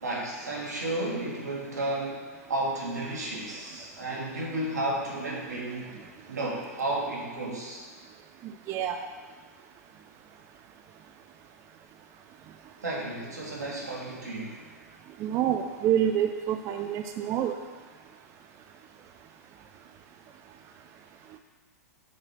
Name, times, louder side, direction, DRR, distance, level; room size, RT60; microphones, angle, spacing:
voice 1, 0.0-5.9 6.3-7.9 12.8-14.6, right 1 dB, 85° right, -4 dB, 2.0 m, -32 dB
voice 2, 15.2-17.5, right 10 dB, 30° right, 6 dB, 0.4 m, -27 dB
6.4 x 4.1 x 5.7 m, 1.5 s
hypercardioid pair, 105°, 9 cm